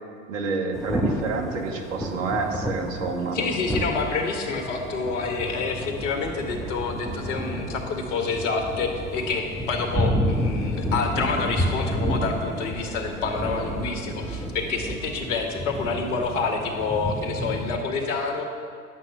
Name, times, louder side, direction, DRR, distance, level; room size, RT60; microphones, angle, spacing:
voice 1, 0.3-3.4, right 4 dB, 60° right, 3 dB, 1.7 m, -28 dB
Thunder / Rain, 0.7-17.8, equal, ahead, 0.9 m, -30 dB
voice 2, 3.3-18.4, left 4 dB, 55° left, 4 dB, 1.7 m, -28 dB
10.5 x 7.5 x 6.1 m, 2.1 s
figure-of-eight pair, 90°, 43 cm